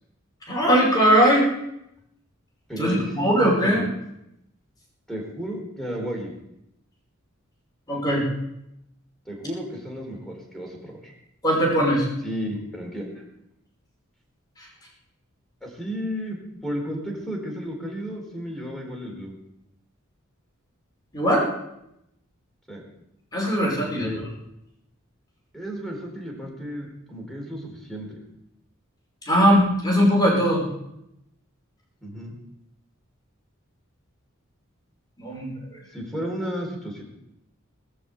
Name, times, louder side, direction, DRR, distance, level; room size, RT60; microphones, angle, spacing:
voice 1, 0.5-1.5 2.8-3.8 7.9-8.3 11.4-12.0 21.1-21.5 23.3-24.1 29.2-30.6 35.2-35.5, equal, 20° left, -2 dB, 5.6 m, -20 dB
voice 2, 2.7-3.9 5.1-6.4 9.3-11.1 12.2-13.2 15.6-19.4 22.7-22.8 23.8-24.2 25.5-28.2 32.0-32.4 35.9-37.0, equal, ahead, 0 dB, 4.4 m, -33 dB
19.5 x 7.1 x 8.2 m, 0.82 s
head